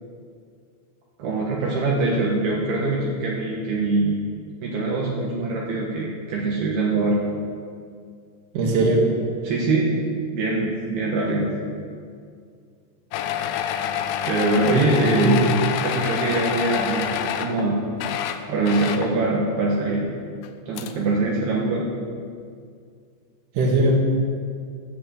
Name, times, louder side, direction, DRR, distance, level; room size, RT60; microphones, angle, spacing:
voice 1, 1.2-4.1 4.6-7.2 9.4-10.0 10.3-11.5 14.3-15.4 15.8-17.8 18.5-20.1 20.7-21.9, right 2 dB, 70° right, -4 dB, 3.1 m, -23 dB
voice 2, 8.5-9.1 14.7-15.5 23.5-24.0, right 2 dB, 55° right, -1 dB, 3.0 m, -20 dB
sound 1, 13.1-17.7 17.9-19.2 20.4-20.5 20.8-20.9, left 9 dB, 85° left, 2.9 m, -27 dB
14.5 x 7.7 x 7.6 m, 2.2 s
omnidirectional pair, 5.2 m